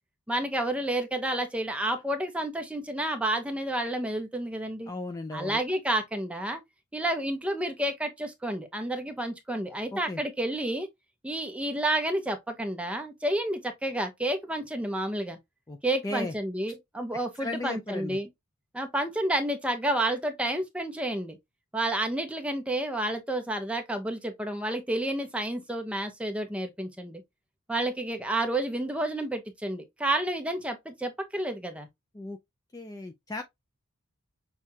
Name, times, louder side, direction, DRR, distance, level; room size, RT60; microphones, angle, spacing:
voice 1, 0.3-4.9 5.3-6.6 6.9-10.9 11.2-15.4 15.8-18.3 18.7-21.4 21.7-27.2 27.7-31.9, right 1 dB, 5° right, 0.7 m, -30 dB
voice 2, 4.9-5.6 9.9-10.2 15.7-15.8 16.0-16.3 17.4-18.2 32.1-32.4 32.7-33.4, left 2 dB, 15° left, 0.4 m, -35 dB
6.3 x 2.4 x 2.7 m
head